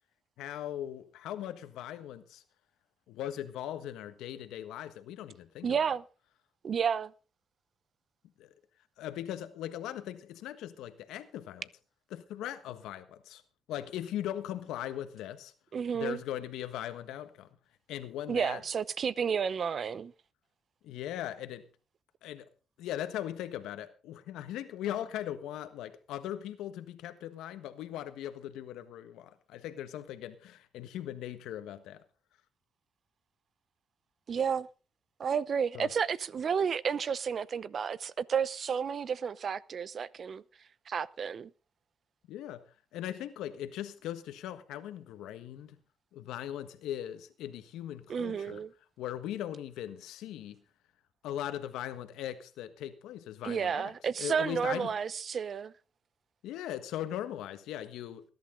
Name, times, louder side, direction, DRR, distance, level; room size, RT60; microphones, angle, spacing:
voice 1, 0.4-2.4 3.1-5.8 8.4-8.5 9.0-11.7 12.1-13.4 13.7-15.5 15.9-17.5 17.9-18.6 20.8-21.6 22.2-22.5 22.8-32.0 35.7-35.9 42.3-42.6 42.9-45.8 46.1-48.6 49.0-50.6 51.2-53.9 54.2-54.9 56.4-58.2, left 11 dB, 90° left, 1.4 m, -39 dB
voice 2, 5.6-6.0 6.6-7.1 15.7-16.2 18.3-20.1 34.3-34.7 35.2-40.4 40.9-41.5 48.1-48.7 53.4-55.7, right 7 dB, 50° right, 0.7 m, -31 dB
19.5 x 11.5 x 3.9 m
cardioid pair, 90°, 0 cm